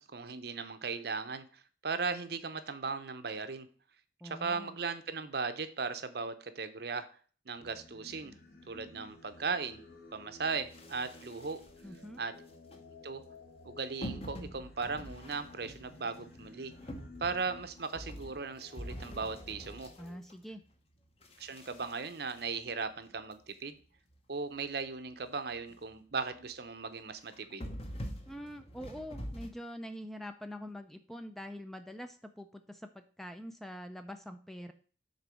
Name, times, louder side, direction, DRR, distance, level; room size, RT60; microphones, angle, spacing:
voice 1, 0.0-3.7 4.2-7.1 7.5-8.3 8.7-9.8 10.1-11.6 12.2-12.3 13.0-13.2 13.6-16.7 17.2-19.9 21.4-23.8 24.3-27.7, right 4 dB, 55° right, 11 dB, 0.7 m, -37 dB
voice 2, 4.2-4.8 11.8-12.2 20.0-20.6 28.3-34.7, equal, ahead, 7 dB, 0.4 m, -45 dB
Singing, 7.5-20.2, left 3 dB, 55° left, 1.3 m, -55 dB
sound 1, 10.7-12.0 12.5-12.8 14.0-20.7 21.2-23.3 23.8-23.9 24.1-24.2 24.7-24.8 25.1-25.3 25.5-26.0 26.3-26.5 27.2-29.5, equal, 30° left, 0.9 m, -46 dB
6.8 x 4.0 x 6.3 m, 0.42 s
head